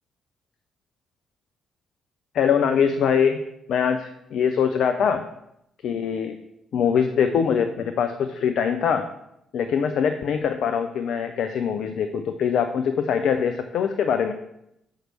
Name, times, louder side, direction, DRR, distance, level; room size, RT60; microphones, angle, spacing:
voice 1, 2.3-3.4 3.7-5.2 5.8-6.4 6.7-9.1 9.5-14.3, left 7 dB, 60° left, 8 dB, 0.5 m, -23 dB
6.5 x 4.6 x 6.1 m, 0.81 s
hypercardioid pair, 45°, 0 cm